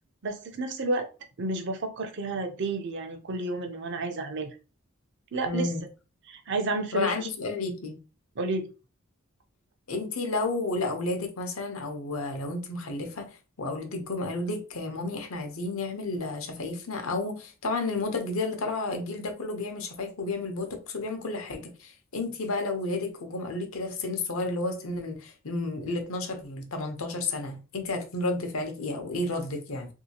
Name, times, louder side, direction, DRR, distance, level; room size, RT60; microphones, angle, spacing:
voice 1, 0.2-1.1 1.4-4.5 5.3-5.7 6.3-7.3 8.4-8.7, right 2 dB, 55° right, 0.6 m, -31 dB
voice 2, 5.5-5.9 6.9-8.0 9.9-29.9, left 2 dB, 80° left, 0.8 m, -32 dB
3.1 x 2.7 x 2.8 m
head